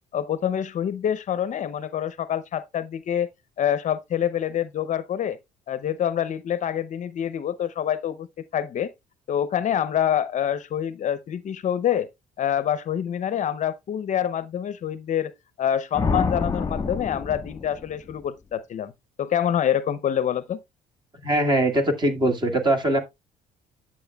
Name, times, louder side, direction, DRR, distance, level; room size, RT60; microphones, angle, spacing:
voice 1, 0.1-3.3 3.6-5.4 5.7-8.9 9.3-12.1 12.4-15.3 15.6-18.9 19.2-20.6, left 9 dB, 45° left, 0.6 m, -26 dB
sound 1, 15.9-18.2, left 4 dB, 20° left, 1.2 m, -28 dB
voice 2, 21.2-23.0, right 1 dB, 25° right, 1.8 m, -21 dB
10.0 x 7.3 x 2.3 m
cardioid pair, 110°, 17 cm